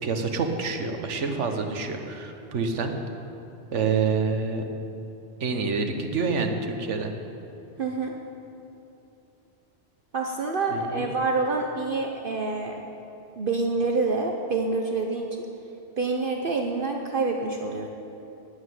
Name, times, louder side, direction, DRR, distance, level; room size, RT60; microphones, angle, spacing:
voice 1, 0.0-3.0 3.7-4.6 5.4-7.1 10.7-11.1, right 4 dB, 85° right, 5 dB, 1.4 m, -27 dB
voice 2, 7.8-8.1 10.1-12.8 13.4-15.4 16.0-17.9, right 3 dB, 50° right, 2 dB, 0.9 m, -27 dB
9.5 x 9.3 x 9.3 m, 2.9 s
omnidirectional pair, 1.2 m